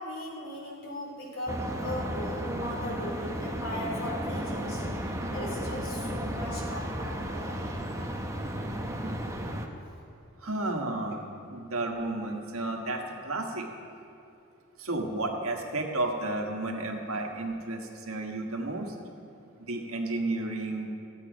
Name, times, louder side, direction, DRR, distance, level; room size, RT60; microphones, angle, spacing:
voice 1, 0.0-7.8, left 1 dB, 70° left, -3 dB, 3.1 m, -38 dB
sound 1, 1.5-9.7, equal, 15° right, 0.7 m, -34 dB
voice 2, 10.4-13.6 14.8-18.9 19.6-20.9, right 2 dB, 80° right, 2 dB, 1.4 m, -32 dB
15.0 x 8.4 x 5.1 m, 2.6 s
head